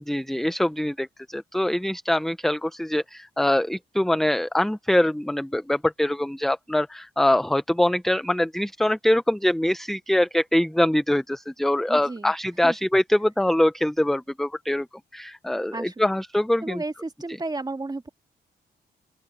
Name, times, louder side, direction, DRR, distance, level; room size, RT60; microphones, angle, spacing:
voice 1, 0.1-14.9 15.1-16.8, left 1 dB, ahead, 0.6 m, -23 dB
voice 2, 11.9-12.3 12.6-12.8 15.7-16.2 16.6-18.1, right 2 dB, 20° right, 2.0 m, -33 dB
open air
cardioid pair, 85°, 19 cm